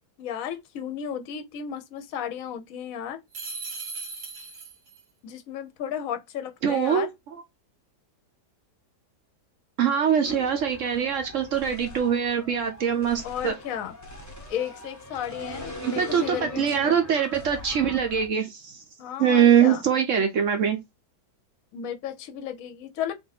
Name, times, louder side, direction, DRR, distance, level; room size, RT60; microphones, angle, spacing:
voice 1, 0.2-3.2 5.2-7.1 13.2-13.9 14.5-17.0 19.0-19.8 21.7-23.1, left 9 dB, 60° left, 1.0 m, -34 dB
sound 1, 3.3-5.0, right 4 dB, 85° right, 2.1 m, -37 dB
voice 2, 6.6-7.4 9.8-13.5 15.8-18.8 19.2-20.8, right 8 dB, 60° right, 0.9 m, -23 dB
sound 2, 10.2-18.3, left 1 dB, 15° left, 0.6 m, -41 dB
3.7 x 2.6 x 4.0 m
omnidirectional pair, 1.8 m